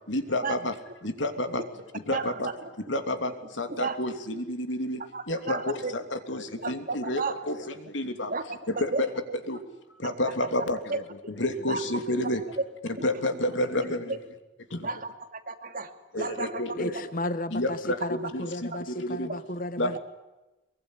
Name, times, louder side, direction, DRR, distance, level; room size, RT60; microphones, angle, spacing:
voice 1, 0.1-0.7 1.0-1.6 2.1-2.5 2.9-5.0 5.3-8.3 8.7-9.1 9.5-9.6 10.0-11.0 11.4-12.4 13.0-14.2 14.7-14.9 16.1-17.1 17.5-19.3 19.8-20.0, left 1 dB, 80° left, 8 dB, 3.0 m, -30 dB
voice 2, 5.1-5.9 6.6-7.4 8.3-9.1 10.0-10.3 10.9-11.0 11.7-11.8 13.0-13.4 14.8-16.6 18.7-18.8, right 4 dB, 50° right, 7 dB, 2.6 m, -33 dB
voice 3, 16.8-20.0, left 1 dB, 50° left, 13 dB, 1.1 m, -34 dB
23.5 x 23.0 x 9.9 m, 1.0 s
head